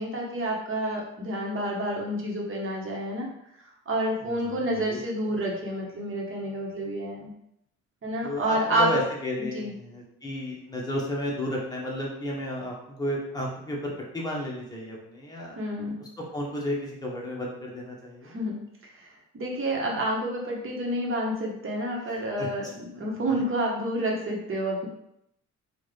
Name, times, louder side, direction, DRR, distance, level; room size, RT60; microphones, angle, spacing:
voice 1, 0.0-3.3 3.9-7.3 8.0-9.0 9.4-9.7 15.5-16.0 18.2-18.6 18.9-24.9, right 1 dB, 45° right, -2 dB, 1.2 m, -29 dB
voice 2, 4.2-5.3 8.2-15.6 16.0-18.3 22.4-22.5 23.3-23.4, left 1 dB, 15° left, -3 dB, 1.2 m, -33 dB
3.7 x 2.4 x 3.3 m, 0.77 s
cardioid pair, 90°, 30 cm